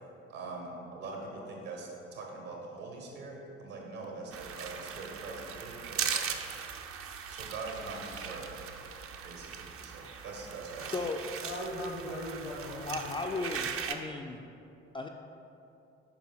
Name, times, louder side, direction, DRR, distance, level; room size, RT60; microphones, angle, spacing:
voice 1, 0.3-6.3 7.3-8.5 9.2-11.1, right 3 dB, 65° right, -1 dB, 1.6 m, -43 dB
sound 1, 4.3-13.9, right 7 dB, 40° right, 0.6 m, -39 dB
voice 2, 11.4-13.7, left 1 dB, 85° left, -1 dB, 1.2 m, -39 dB
voice 3, 12.9-14.4 14.9-15.1, left 3 dB, 15° left, 2 dB, 0.3 m, -35 dB
5.2 x 4.6 x 5.7 m, 2.7 s
figure-of-eight pair, 50°, 35 cm